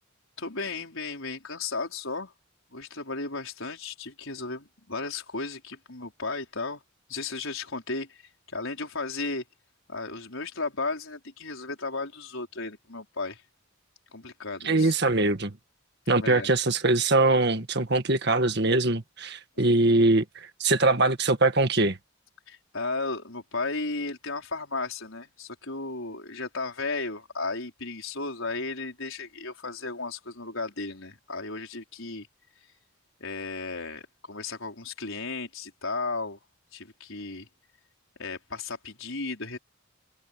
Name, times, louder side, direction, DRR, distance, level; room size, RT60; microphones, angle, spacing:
voice 1, 0.4-2.3 2.7-6.8 7.1-9.4 9.9-13.4 14.1-15.0 16.1-16.5 19.6-19.7 22.5-32.3 33.2-36.4 36.7-37.5 38.2-39.6, left 3 dB, 65° left, 5.0 m, -34 dB
voice 2, 14.6-15.5 16.1-22.0, right 2 dB, 50° right, 1.8 m, -22 dB
head